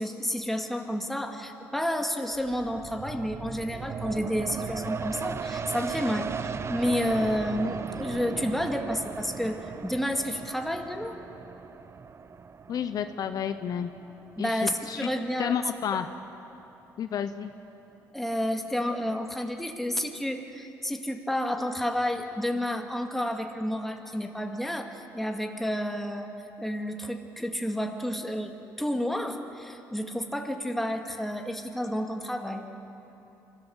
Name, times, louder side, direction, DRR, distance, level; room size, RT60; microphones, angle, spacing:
voice 1, 0.0-11.2 14.4-15.6 18.1-26.3 26.6-32.8, equal, 5° left, 3 dB, 2.1 m, -30 dB
sound 1, 2.3-15.6 16.0-16.1, right 5 dB, 35° right, 0.7 m, -37 dB
voice 2, 12.7-13.9 14.4-15.1 15.4-16.1 17.0-17.5, left 8 dB, 55° left, 10 dB, 0.8 m, -31 dB
25.0 x 15.5 x 7.1 m, 3.0 s
supercardioid pair, 75°, 8 cm